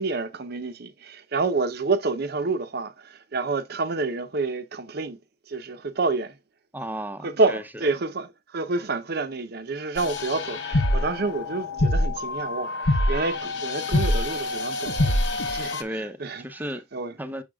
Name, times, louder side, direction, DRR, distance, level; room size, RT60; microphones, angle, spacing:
voice 1, 0.0-5.2 5.5-6.4 7.2-16.4 16.9-17.1, right 3 dB, 60° right, 0.7 m, -28 dB
voice 2, 6.7-7.6 15.8-16.8 17.2-17.4, equal, 10° right, 0.7 m, -34 dB
sound 1, 10.0-15.8, left 1 dB, 70° left, 0.9 m, -25 dB
7.1 x 6.2 x 2.3 m
head